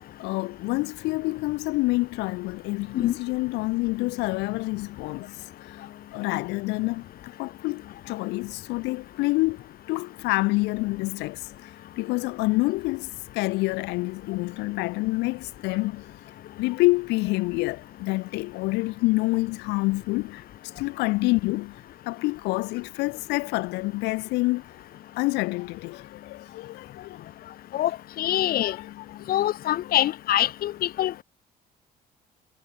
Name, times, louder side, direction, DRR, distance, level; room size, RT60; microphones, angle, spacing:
voice 1, 0.2-7.1 7.4-16.1 16.5-24.6 25.2-27.3 28.6-29.2, left 23 dB, 90° left, 0.5 m, -27 dB
voice 2, 28.2-28.8 29.3-31.2, left 13 dB, 60° left, 0.9 m, -24 dB
cardioid pair, 110°, 17 cm